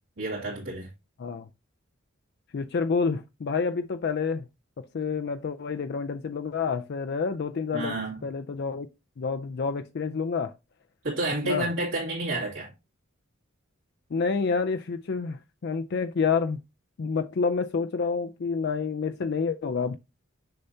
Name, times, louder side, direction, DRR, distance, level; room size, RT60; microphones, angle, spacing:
voice 1, 0.2-0.9 7.7-8.2 11.0-12.7, right 2 dB, 75° right, 2.6 m, -30 dB
voice 2, 2.5-4.5 4.8-7.9 8.2-8.9 9.2-10.5 11.4-11.7 14.1-16.6 17.0-20.0, left 5 dB, 55° left, 0.4 m, -28 dB
6.6 x 5.6 x 2.7 m
head